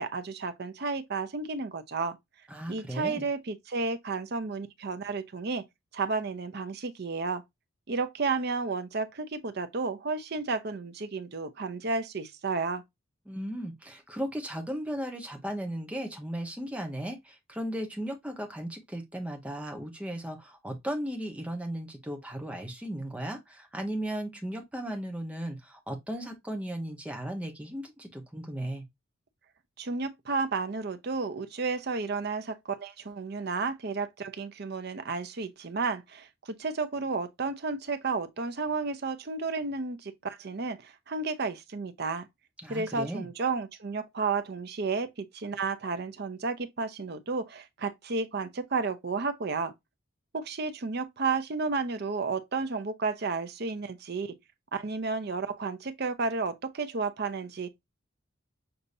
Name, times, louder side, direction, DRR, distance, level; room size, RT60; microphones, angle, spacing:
voice 1, 0.0-2.2 2.7-5.6 5.9-7.4 7.9-12.8 29.8-42.3 42.7-49.7 50.3-54.3 54.7-57.7, right 4 dB, 50° right, 0.6 m, -32 dB
voice 2, 2.5-3.3 13.3-28.8 42.6-43.3, right 1 dB, 5° right, 1.0 m, -36 dB
6.6 x 2.9 x 2.6 m
head